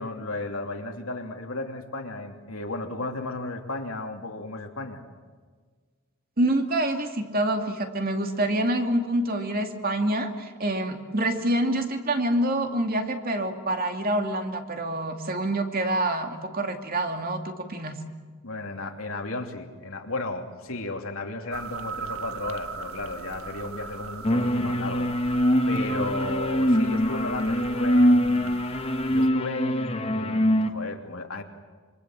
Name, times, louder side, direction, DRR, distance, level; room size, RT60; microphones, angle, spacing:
voice 1, 0.0-5.0 18.4-25.1 25.7-28.6 29.1-31.4, left 2 dB, 75° left, 3 dB, 2.9 m, -34 dB
voice 2, 6.4-18.0, right 1 dB, 40° right, 4 dB, 2.5 m, -26 dB
sound 1, 21.5-29.3, right 5 dB, 80° right, 1.5 m, -39 dB
sound 2, 24.2-30.7, equal, 25° left, 1.2 m, -23 dB
26.5 x 25.0 x 7.5 m, 1.5 s
head